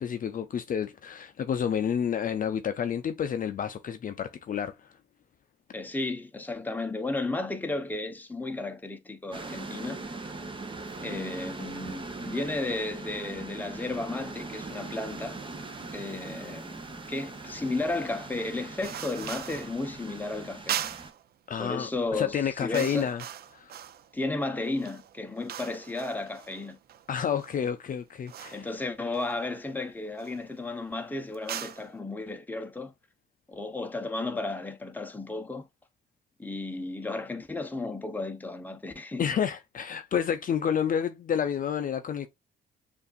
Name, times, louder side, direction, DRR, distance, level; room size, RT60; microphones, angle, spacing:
voice 1, 0.0-4.8 21.5-23.2 23.5-23.7 27.1-28.7 39.2-42.3, left 8 dB, 45° left, 0.5 m, -29 dB
voice 2, 5.7-10.0 11.0-15.4 15.9-16.8 17.1-20.8 21.6-23.1 24.1-26.8 28.5-32.9 33.5-35.7 36.4-39.3, left 2 dB, 10° left, 0.8 m, -33 dB
sound 1, 9.3-21.1, right 3 dB, 25° right, 0.9 m, -40 dB
sound 2, 18.8-19.8 20.7-21.2 22.0-22.2 22.5-24.1 24.6-27.6 28.3-28.7 29.1-29.7 30.1-30.5 31.3-31.9, right 10 dB, 50° right, 0.4 m, -39 dB
6.7 x 2.6 x 2.3 m
cardioid pair, 90°, 20 cm